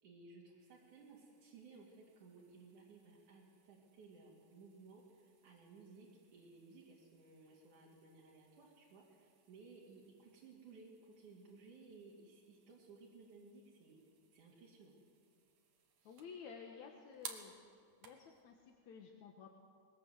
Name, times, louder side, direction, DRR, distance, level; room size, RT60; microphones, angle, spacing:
voice 1, 0.0-14.0 14.3-14.9, right 4 dB, 85° right, -4 dB, 4.1 m, -59 dB
sound 1, 0.6-18.7, right 6 dB, 60° right, 2.7 m, -61 dB
voice 2, 16.1-17.5 18.0-19.5, left 6 dB, 70° left, 2 dB, 2.7 m, -53 dB
21.5 x 19.5 x 8.1 m, 2.3 s
omnidirectional pair, 3.4 m